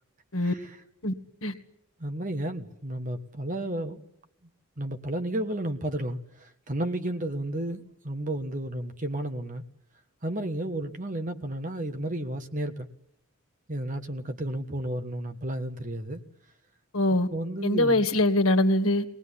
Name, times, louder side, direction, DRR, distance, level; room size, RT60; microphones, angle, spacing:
voice 1, 2.0-4.0 4.8-9.6 10.2-12.9 13.7-16.2 17.3-18.1, right 1 dB, 35° right, 1.4 m, -32 dB
voice 2, 16.9-17.3 17.6-19.0, left 1 dB, 70° left, 1.7 m, -23 dB
22.0 x 19.0 x 10.0 m
head